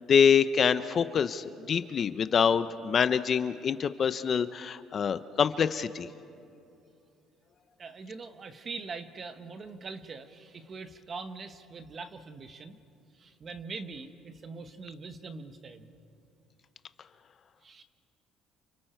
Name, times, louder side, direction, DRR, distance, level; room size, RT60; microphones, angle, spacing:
voice 1, 0.1-6.1, left 7 dB, 35° left, 12 dB, 0.6 m, -25 dB
voice 2, 7.8-12.8 13.1-15.9 17.6-17.8, right 4 dB, 30° right, 8 dB, 1.2 m, -42 dB
30.0 x 28.0 x 4.5 m, 2.6 s
cardioid pair, 145°, 0 cm